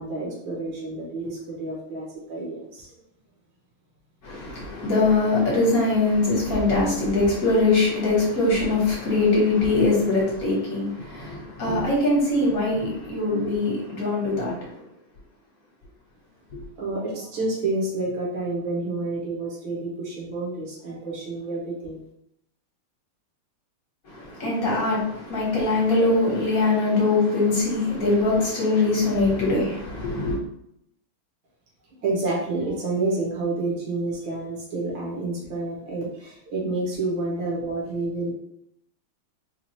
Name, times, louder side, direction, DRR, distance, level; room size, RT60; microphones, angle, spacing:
voice 1, 0.0-2.9 16.8-22.0 31.9-38.3, right 2 dB, 70° right, 1.8 m, -29 dB
voice 2, 4.2-14.8 24.1-30.4, left 2 dB, 50° left, 1.5 m, -22 dB
4.6 x 2.4 x 2.8 m
omnidirectional pair, 2.3 m